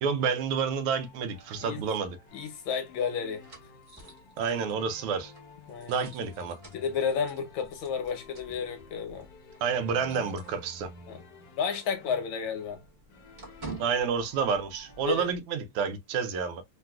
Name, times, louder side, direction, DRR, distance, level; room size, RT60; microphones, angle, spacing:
voice 1, 0.0-2.2 4.4-5.3 5.9-6.6 9.6-10.9 13.8-16.6, right 6 dB, 85° right, 1.5 m, -29 dB
sound 1, 0.8-15.2, left 3 dB, 55° left, 1.1 m, -53 dB
voice 2, 2.3-3.4 5.7-6.1 6.7-9.3 11.1-11.2 11.6-12.8 15.0-15.3, left 6 dB, 70° left, 1.6 m, -32 dB
sound 2, 2.4-11.1 11.4-11.6 11.9-15.4, right 3 dB, 35° right, 0.8 m, -50 dB
3.8 x 2.2 x 2.3 m
omnidirectional pair, 2.4 m